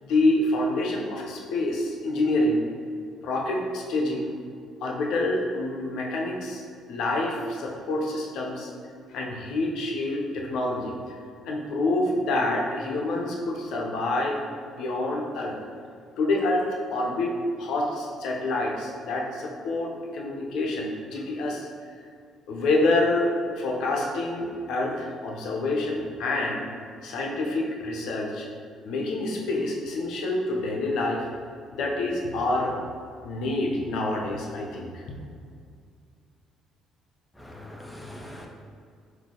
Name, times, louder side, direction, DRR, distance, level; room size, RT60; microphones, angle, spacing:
voice 1, 0.0-2.6 3.2-4.4 4.8-6.6 6.9-8.7 9.1-11.2 11.4-14.4 14.6-15.6 16.2-16.6 16.9-21.7 22.5-26.6 27.0-28.5 28.8-31.3 31.7-32.8 33.2-35.0, left 2 dB, 75° left, -1 dB, 0.6 m, -27 dB
voice 2, 37.4-38.5, left 1 dB, 10° left, 0 dB, 0.7 m, -42 dB
3.8 x 2.7 x 3.7 m, 2.2 s
supercardioid pair, 75°, 0 cm